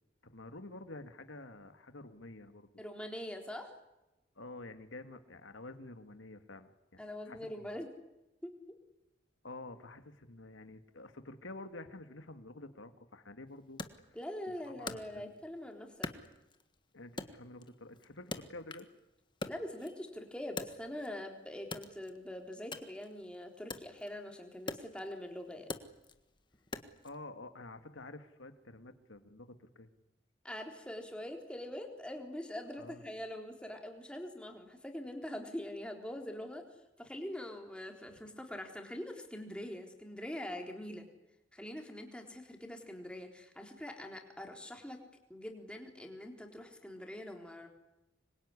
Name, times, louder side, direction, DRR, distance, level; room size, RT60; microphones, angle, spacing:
voice 1, 0.2-2.7 4.4-7.7 9.4-13.8 14.5-15.3 16.9-18.9 27.0-29.9 32.8-33.0, left 2 dB, 75° left, 8 dB, 2.1 m, -49 dB
voice 2, 2.8-3.7 7.0-7.9 8.4-8.5 14.1-16.1 19.5-25.7 30.4-36.6 37.0-41.1 41.5-45.0 45.3-47.7, left 1 dB, 5° left, 2 dB, 3.8 m, -43 dB
Wood, 13.8-15.6 16.0-16.8 17.2-19.0 19.3-21.2 21.6-27.2, left 3 dB, 25° left, 1.5 m, -45 dB
26.0 x 22.5 x 9.8 m, 0.97 s
head